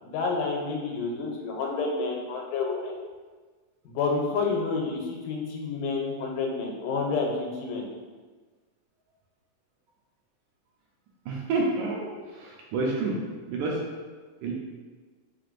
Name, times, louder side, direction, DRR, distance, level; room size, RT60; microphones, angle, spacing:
voice 1, 0.0-3.0 3.9-7.9, left 4 dB, 90° left, 0 dB, 2.2 m, -29 dB
voice 2, 11.3-13.2 13.5-13.8 14.4-14.5, right 3 dB, 80° right, -2 dB, 1.9 m, -29 dB
5.0 x 3.3 x 2.5 m, 1.4 s
omnidirectional pair, 3.6 m